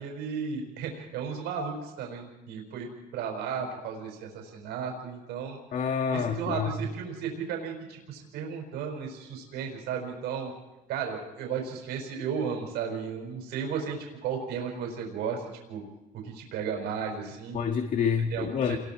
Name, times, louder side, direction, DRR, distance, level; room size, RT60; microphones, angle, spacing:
voice 1, 0.0-5.6 6.1-10.5 10.9-15.4 15.7-15.8 16.2-17.6 18.3-18.8, right 6 dB, 85° right, 2 dB, 5.5 m, -34 dB
voice 2, 5.7-6.8 17.5-18.8, left 6 dB, 50° left, 4 dB, 1.8 m, -28 dB
28.5 x 22.0 x 4.6 m, 1.0 s
cardioid pair, 110°, 17 cm